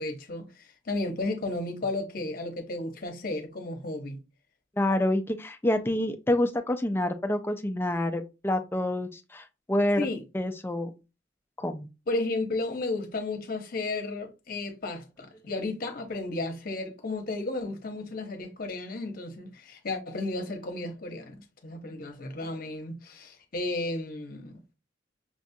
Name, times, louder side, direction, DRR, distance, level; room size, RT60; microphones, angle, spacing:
voice 1, 0.0-4.2 10.0-10.2 12.1-24.7, left 2 dB, 50° left, 0.8 m, -33 dB
voice 2, 4.8-10.1 10.3-10.9 11.6-11.9, left 1 dB, 10° left, 0.4 m, -27 dB
6.0 x 2.4 x 2.7 m
head